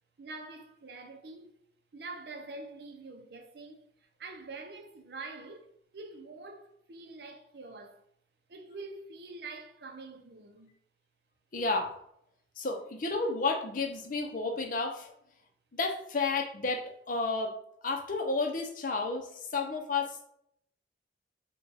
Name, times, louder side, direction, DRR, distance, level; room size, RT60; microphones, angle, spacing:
voice 1, 0.2-1.5 1.9-8.0 8.5-10.7, right 3 dB, 60° right, 0.5 m, -45 dB
voice 2, 11.5-12.0 12.6-15.1 15.7-17.5 17.8-20.2, left 3 dB, 45° left, 0.6 m, -31 dB
4.4 x 2.3 x 3.3 m
head